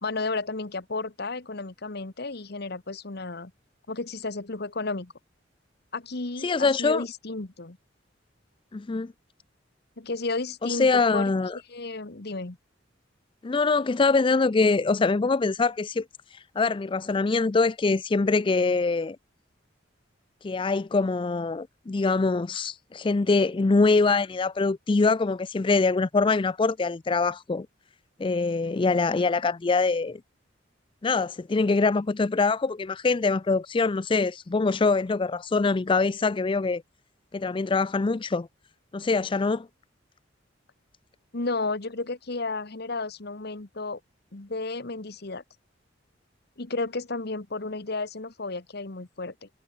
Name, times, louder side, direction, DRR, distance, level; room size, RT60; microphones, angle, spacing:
voice 1, 0.0-3.5 3.9-5.1 5.9-7.8 10.0-12.6 41.3-44.0 44.3-45.4 46.6-49.5, left 3 dB, 60° left, 1.4 m, -33 dB
voice 2, 6.4-7.0 8.7-9.1 10.7-11.6 13.4-16.1 16.6-19.2 20.4-27.7 28.2-30.2 31.0-36.8 37.3-38.5 38.9-39.7, left 3 dB, 25° left, 0.4 m, -24 dB
head